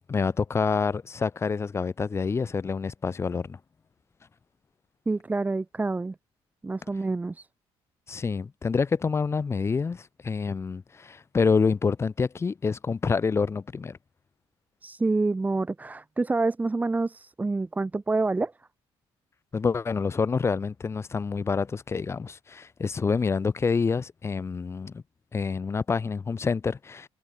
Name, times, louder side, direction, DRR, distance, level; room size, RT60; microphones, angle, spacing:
voice 1, 0.1-3.6 8.1-14.0 19.5-25.0 25.3-27.1, left 5 dB, 25° left, 6.5 m, -27 dB
voice 2, 5.1-6.1 6.6-7.5 14.8-18.5, right 3 dB, 15° right, 8.0 m, -27 dB
cardioid pair, 135°, 10 cm